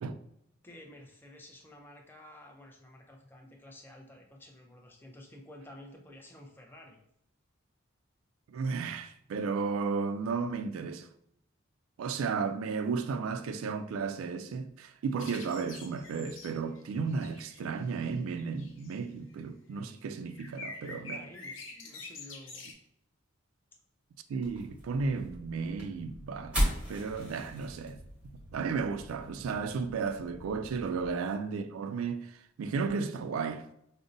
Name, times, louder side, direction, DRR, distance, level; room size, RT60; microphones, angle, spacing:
voice 1, 0.6-7.0 20.9-22.7, left 1 dB, 10° left, 0.4 m, -52 dB
voice 2, 8.5-11.1 12.0-21.2 24.3-28.0 28.5-33.7, right 5 dB, 85° right, 0.3 m, -34 dB
sound 1, 15.2-19.0 20.3-22.7, left 3 dB, 70° left, 0.6 m, -46 dB
sound 2, 24.4-31.2, equal, 5° right, 0.9 m, -37 dB
5.1 x 2.0 x 2.5 m
head